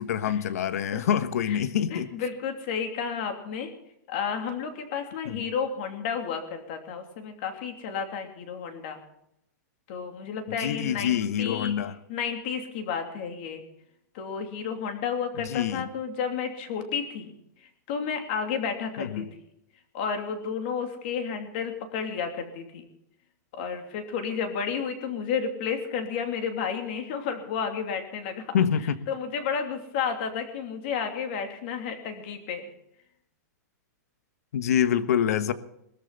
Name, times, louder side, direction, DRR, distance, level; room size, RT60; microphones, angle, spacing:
voice 1, 0.0-2.1 5.2-5.4 10.5-11.9 15.4-15.9 19.0-19.3 28.5-29.0 34.5-35.5, left 9 dB, 60° left, 12 dB, 1.3 m, -26 dB
voice 2, 1.9-3.7 4.1-9.0 9.9-11.7 12.1-13.6 14.1-17.3 17.9-19.3 19.9-22.8 23.5-28.4 29.1-32.7, left 6 dB, 35° left, 5 dB, 2.8 m, -32 dB
21.5 x 13.5 x 4.1 m, 0.78 s
supercardioid pair, 180°, 9 cm